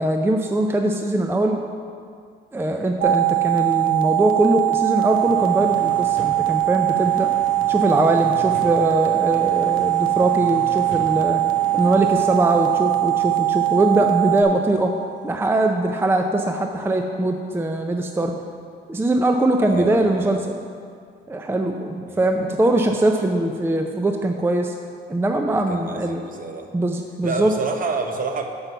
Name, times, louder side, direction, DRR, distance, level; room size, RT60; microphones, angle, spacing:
voice 1, 0.0-1.6 2.5-7.3 7.7-11.4 11.7-14.9 15.2-18.3 18.9-20.6 21.3-24.7 25.1-26.2 26.7-27.5, right 1 dB, 10° right, 4 dB, 0.5 m, -21 dB
sound 1, 3.0-14.4, right 15 dB, 90° right, 0.6 m, -21 dB
sound 2, 5.1-14.9 15.3-15.4, right 2 dB, 70° right, 1.8 m, -40 dB
voice 2, 19.7-20.4 22.1-22.2 25.7-26.7 27.2-28.4, right 4 dB, 45° right, 4 dB, 0.9 m, -28 dB
6.1 x 5.5 x 6.7 m, 2.2 s
cardioid pair, 90°, 20 cm